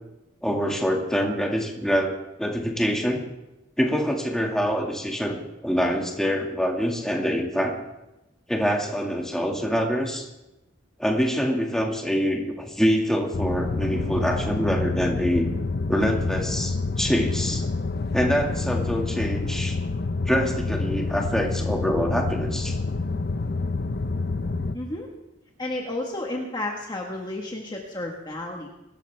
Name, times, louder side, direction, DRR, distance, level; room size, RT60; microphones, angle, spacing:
voice 1, 0.4-3.2 3.8-7.8 8.5-10.3 11.0-15.4 15.9-17.6 18.1-19.8 20.3-22.8, equal, 5° left, 0 dB, 2.1 m, -25 dB
sound 1, 13.3-24.8, left 3 dB, 50° left, 0.7 m, -28 dB
voice 2, 24.7-25.1 25.6-28.7, left 1 dB, 20° left, 0 dB, 1.5 m, -32 dB
24.0 x 13.5 x 3.5 m, 0.95 s
head